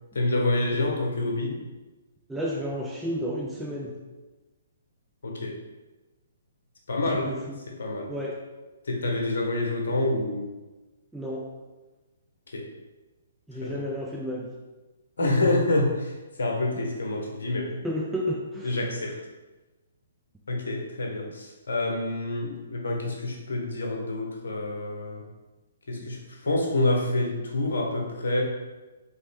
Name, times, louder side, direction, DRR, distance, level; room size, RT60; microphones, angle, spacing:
voice 1, 0.1-1.6 5.2-5.6 6.9-7.3 7.8-8.1 8.9-10.5 12.5-12.7 13.6-13.8 15.2-17.8 18.6-19.2 20.5-25.3 25.9-28.4, left 2 dB, 70° left, 0 dB, 0.9 m, -27 dB
voice 2, 2.3-3.9 7.1-7.6 8.1-8.4 11.1-11.5 13.5-14.5 17.8-18.8, equal, 5° right, -4 dB, 0.5 m, -31 dB
4.1 x 2.9 x 3.3 m, 1.2 s
figure-of-eight pair, 130°, 0 cm